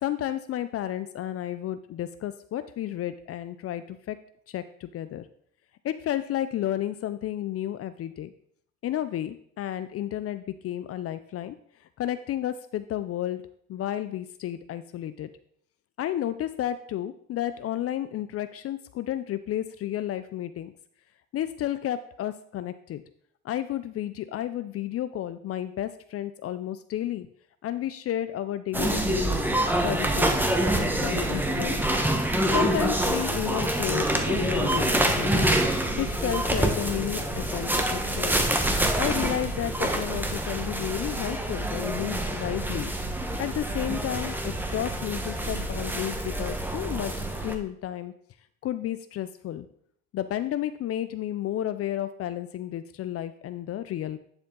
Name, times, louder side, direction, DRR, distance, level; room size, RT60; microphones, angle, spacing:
voice 1, 0.0-4.2 4.5-5.3 5.8-8.3 8.8-11.6 12.0-13.4 13.7-15.3 16.0-20.7 21.3-23.0 23.4-27.3 27.6-29.4 29.8-31.8 32.5-35.5 36.0-38.4 39.0-42.9 43.4-47.1 47.4-48.1 48.6-49.7 50.1-54.2, left 12 dB, 50° left, 12 dB, 0.5 m, -32 dB
sound 1, 28.7-47.6, right 1 dB, 5° right, 1.0 m, -26 dB
10.5 x 4.4 x 3.8 m, 0.64 s
supercardioid pair, 80°, 30 cm